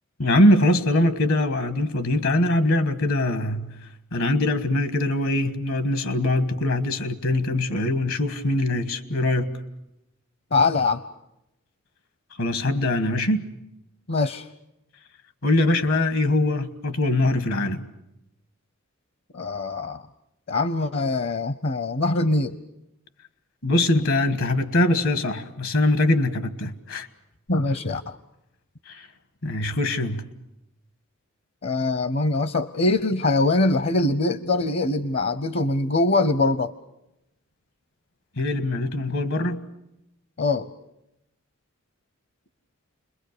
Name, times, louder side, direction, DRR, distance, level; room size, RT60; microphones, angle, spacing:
voice 1, 0.2-3.7 4.1-9.6 12.4-13.5 15.4-17.8 23.6-27.1 28.9-29.1 29.4-30.3 38.4-39.6, left 1 dB, 75° left, 1.6 m, -22 dB
voice 2, 10.5-11.0 14.1-14.5 19.3-20.0 20.5-22.6 27.5-28.2 31.6-36.7 40.4-40.7, left 2 dB, 55° left, 0.8 m, -23 dB
30.0 x 22.0 x 6.8 m
head